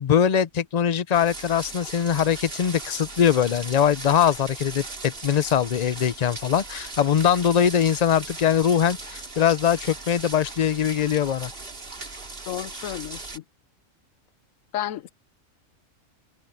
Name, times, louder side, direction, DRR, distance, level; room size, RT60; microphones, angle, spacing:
voice 1, 0.0-11.5, left 8 dB, 50° left, 0.5 m, -22 dB
water mill, 1.1-13.4, right 3 dB, 45° right, 2.7 m, -38 dB
voice 2, 12.4-13.4 14.7-15.1, left 12 dB, 85° left, 1.1 m, -32 dB
omnidirectional pair, 1.4 m